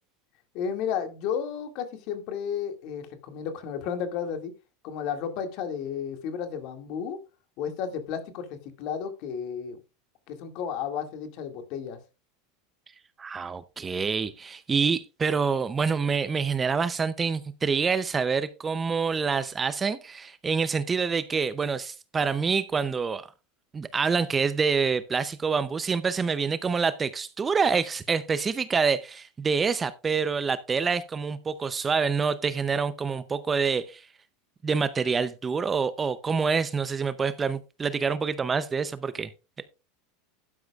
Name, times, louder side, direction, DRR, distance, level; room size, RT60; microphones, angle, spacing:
voice 1, 0.5-4.5 4.8-7.2 7.6-9.8 10.3-12.0, left 7 dB, 55° left, 2.2 m, -33 dB
voice 2, 13.2-23.3 23.7-34.1 34.6-39.3, right 5 dB, 20° right, 0.6 m, -26 dB
12.0 x 9.9 x 2.4 m
supercardioid pair, 140°, 0 cm